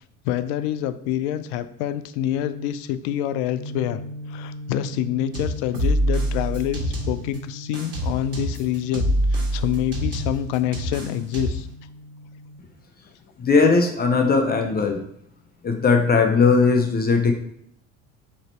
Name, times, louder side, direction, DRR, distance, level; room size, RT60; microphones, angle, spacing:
voice 1, 0.2-4.0 4.3-11.7, left 11 dB, 65° left, 13 dB, 0.5 m, -27 dB
sound 1, 3.5-12.6, equal, 5° left, 1.1 m, -39 dB
sound 2, 5.3-7.4 7.7-11.7, equal, 40° right, 1.8 m, -25 dB
voice 2, 13.4-15.0 15.6-17.3, left 4 dB, 25° left, 4 dB, 0.7 m, -18 dB
3.9 x 3.1 x 4.3 m, 0.72 s
hypercardioid pair, 65°, 39 cm